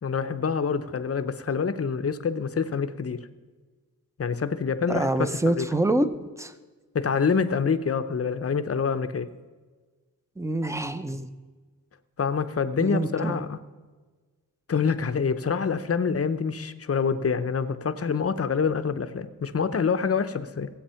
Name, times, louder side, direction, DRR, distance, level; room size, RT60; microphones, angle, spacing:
voice 1, 0.0-3.3 4.2-5.7 6.9-9.3 12.2-13.6 14.7-20.7, left 6 dB, 45° left, 10 dB, 0.7 m, -26 dB
voice 2, 4.9-6.1 6.4-6.5 10.4-11.3 12.8-13.4, right 1 dB, 10° right, 11 dB, 0.7 m, -26 dB
16.5 x 7.9 x 5.7 m, 1.4 s
wide cardioid pair, 100°, 34 cm